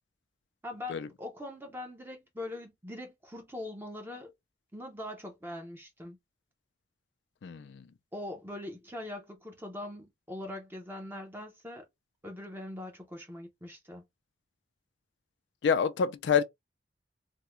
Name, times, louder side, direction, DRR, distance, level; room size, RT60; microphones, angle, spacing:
voice 1, 0.6-4.3 4.7-6.2 8.1-11.8 12.2-14.0, left 1 dB, 10° right, 0.6 m, -42 dB
voice 2, 7.4-7.8 15.6-16.4, left 6 dB, 80° left, 0.4 m, -27 dB
3.5 x 2.1 x 3.0 m
head